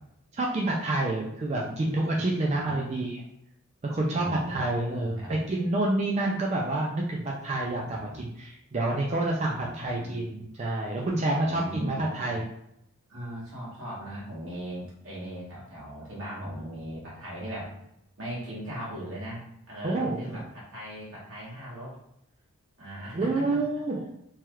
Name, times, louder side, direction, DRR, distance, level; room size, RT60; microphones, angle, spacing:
voice 1, 0.3-3.2 3.8-12.4 19.8-20.4 23.1-24.0, right 2 dB, 30° right, -2 dB, 0.3 m, -28 dB
voice 2, 2.5-2.9 4.1-5.4 7.5-8.2 9.5-10.3 11.4-12.4 13.1-17.7 18.2-21.9 22.8-23.6, equal, 65° right, -6 dB, 1.5 m, -39 dB
3.1 x 2.3 x 3.0 m, 0.78 s
head